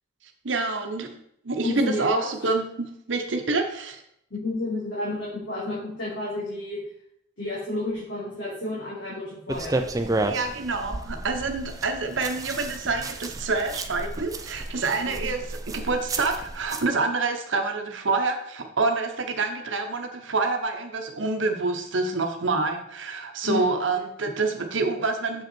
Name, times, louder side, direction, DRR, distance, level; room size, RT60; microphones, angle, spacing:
voice 1, 0.4-1.2 1.4-4.0 10.3-25.4, right 3 dB, 80° right, 5 dB, 0.9 m, -27 dB
voice 2, 1.6-2.5 4.3-6.8 7.4-9.7 14.9-15.2 23.4-23.8, left 2 dB, 65° left, -10 dB, 3.4 m, -31 dB
sound 1, 9.5-16.9, right 2 dB, 20° right, 0.5 m, -32 dB
7.4 x 5.5 x 4.4 m, 0.70 s
head